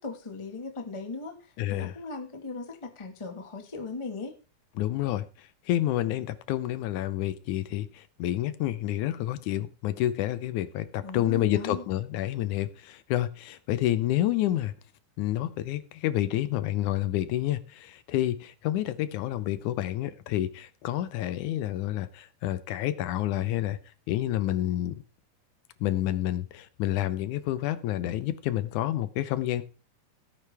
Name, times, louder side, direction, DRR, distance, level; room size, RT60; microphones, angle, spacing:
voice 1, 0.0-4.3 11.0-11.9, left 3 dB, 40° left, 5 dB, 0.4 m, -38 dB
voice 2, 1.6-2.0 4.8-14.7 15.2-23.8 24.1-25.0 25.8-29.6, left 13 dB, 75° left, 14 dB, 2.0 m, -29 dB
17.5 x 9.2 x 3.4 m, 0.33 s
omnidirectional pair, 3.8 m